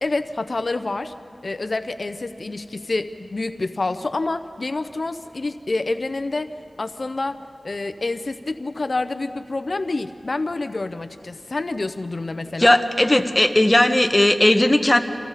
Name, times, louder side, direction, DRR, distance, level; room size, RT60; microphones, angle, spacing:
voice 1, 0.0-1.1 1.4-6.5 6.8-12.8, left 3 dB, 55° left, 10 dB, 0.6 m, -27 dB
voice 2, 12.6-15.0, left 1 dB, 20° left, 7 dB, 1.0 m, -17 dB
29.0 x 27.0 x 4.1 m, 2.5 s
wide cardioid pair, 85°, 0 cm